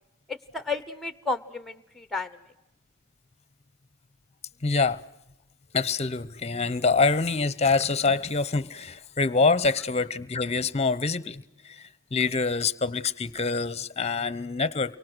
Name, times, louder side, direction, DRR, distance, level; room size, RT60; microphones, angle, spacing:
voice 1, 0.3-2.4, left 3 dB, ahead, 13 dB, 0.9 m, -32 dB
voice 2, 4.6-5.0 5.7-15.0, left 4 dB, 30° left, 18 dB, 0.8 m, -25 dB
29.5 x 24.0 x 6.2 m, 0.91 s
head